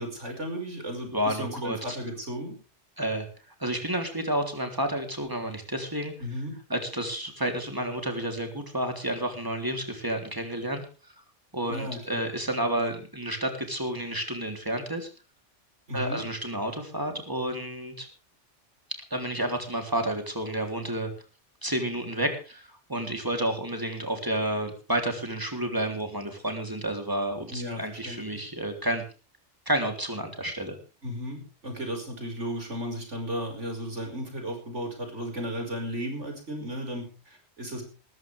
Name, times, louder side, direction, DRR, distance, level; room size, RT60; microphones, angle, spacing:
voice 1, 0.0-2.6 6.2-6.5 11.7-12.2 15.9-16.2 27.5-28.5 31.0-37.8, equal, 85° right, 3 dB, 5.8 m, -35 dB
voice 2, 1.1-2.0 3.0-3.3 3.6-6.1 6.7-10.8 11.5-15.1 15.9-18.1 19.1-21.1 21.6-29.0 29.7-30.8, right 1 dB, 20° right, 4 dB, 3.5 m, -30 dB
19.5 x 14.0 x 3.5 m, 0.36 s
omnidirectional pair, 1.2 m